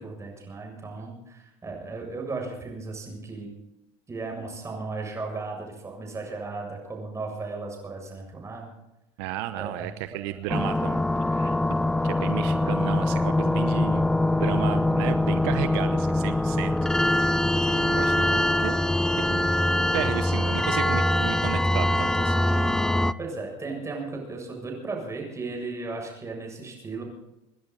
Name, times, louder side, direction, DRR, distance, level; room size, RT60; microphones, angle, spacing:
voice 1, 0.0-3.5 4.1-8.7 9.6-9.9 23.2-27.0, right 3 dB, 20° right, 1 dB, 7.3 m, -35 dB
voice 2, 9.2-11.6 12.0-16.7 17.0-17.4 17.6-18.8 19.2-22.5, right 14 dB, 75° right, 11 dB, 0.9 m, -34 dB
sound 1, 10.5-23.1, left 1 dB, 5° left, 0.5 m, -23 dB
27.5 x 10.5 x 4.1 m, 0.98 s
supercardioid pair, 105°, 14 cm